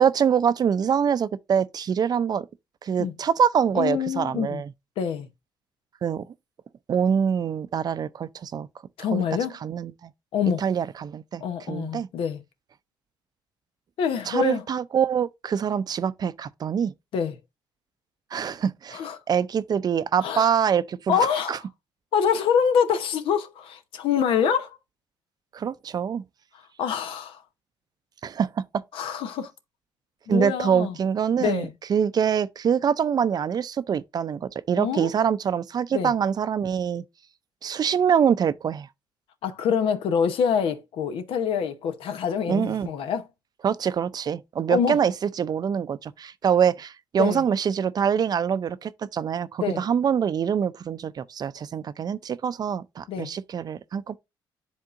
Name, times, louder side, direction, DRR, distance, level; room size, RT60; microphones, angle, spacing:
voice 1, 0.0-2.5 2.8-4.7 6.0-6.3 6.9-8.7 9.1-9.2 9.6-10.1 10.6-11.4 11.7-12.1 14.3-16.9 18.3-21.6 25.5-26.2 28.2-28.8 30.3-37.0 37.6-38.9 42.5-42.9 43.6-54.2, right 7 dB, 45° right, 0.5 m, -25 dB
voice 2, 3.7-4.6 5.0-5.3 9.0-9.5 10.3-10.6 11.4-12.4 14.0-14.6 17.1-17.4 18.9-19.2 20.2-20.5 21.1-21.6 22.1-24.8 26.8-27.4 28.9-29.5 30.3-30.9 31.4-31.7 34.8-35.1 35.9-36.1 39.4-43.3 44.7-45.0 47.2-47.4 49.6-49.8 53.1-53.3, left 7 dB, 75° left, 0.9 m, -25 dB
10.5 x 3.6 x 2.5 m
cardioid pair, 80°, 9 cm